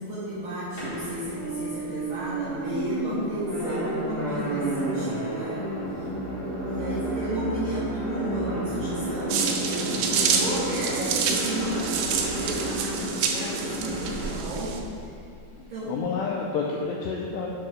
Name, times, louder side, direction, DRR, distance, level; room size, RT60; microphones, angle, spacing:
voice 1, 0.0-5.6 6.0-6.1 6.6-15.1 15.7-15.9, right 1 dB, 70° right, -10 dB, 2.1 m, -33 dB
sound 1, 0.8-15.5, right 1 dB, 50° left, 1.5 m, -31 dB
sound 2, 9.3-14.8, right 6 dB, 90° right, 2.2 m, -28 dB
voice 2, 15.5-17.5, left 5 dB, 90° left, -1 dB, 2.4 m, -30 dB
8.6 x 3.8 x 5.0 m, 2.4 s
omnidirectional pair, 5.4 m